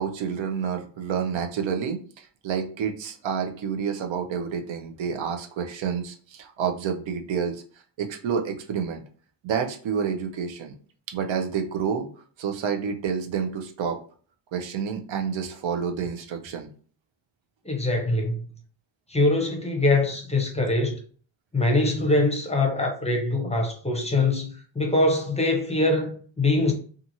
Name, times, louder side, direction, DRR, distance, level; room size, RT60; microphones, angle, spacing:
voice 1, 0.0-7.6 8.0-9.0 9.4-10.7 11.1-12.1 12.4-14.0 14.5-16.7 24.1-24.2, right 7 dB, 90° right, 0.7 m, -29 dB
voice 2, 17.6-18.4 19.1-21.0 21.5-26.7, left 2 dB, 15° left, 0.5 m, -23 dB
2.8 x 2.4 x 2.6 m
wide cardioid pair, 140°, 45 cm